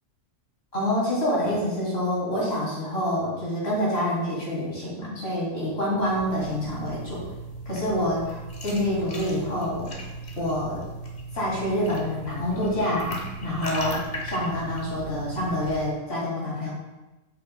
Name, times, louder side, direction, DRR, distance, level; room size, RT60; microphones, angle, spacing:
voice 1, 0.7-7.2 7.7-9.9 10.4-10.8 11.3-16.7, left 1 dB, 55° left, -6 dB, 2.6 m, -27 dB
sound 1, 5.9-15.9, right 1 dB, 40° left, 0.9 m, -37 dB
7.9 x 5.5 x 2.2 m, 1.1 s
omnidirectional pair, 1.3 m